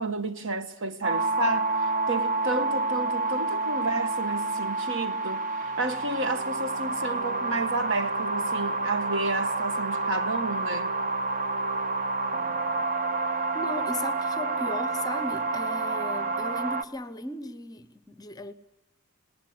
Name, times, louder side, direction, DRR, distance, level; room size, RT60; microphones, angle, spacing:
voice 1, 0.0-5.4 5.8-10.9, right 2 dB, 60° right, 1.4 m, -31 dB
sound 1, 1.0-16.8, right 3 dB, 40° right, 0.9 m, -28 dB
voice 2, 13.5-18.5, left 2 dB, 15° left, 0.8 m, -36 dB
19.5 x 18.0 x 9.4 m
head